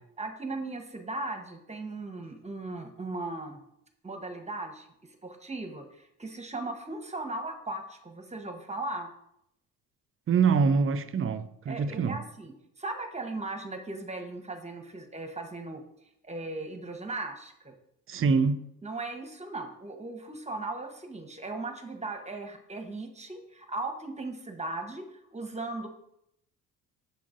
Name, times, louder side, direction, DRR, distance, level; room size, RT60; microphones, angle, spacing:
voice 1, 0.2-3.6 4.0-9.1 11.7-15.8 16.2-17.7 18.8-25.9, right 2 dB, 20° right, 1.1 m, -37 dB
voice 2, 10.3-12.2 18.1-18.6, right 5 dB, 35° right, 0.5 m, -25 dB
6.9 x 3.8 x 3.8 m
hypercardioid pair, 60°, 37 cm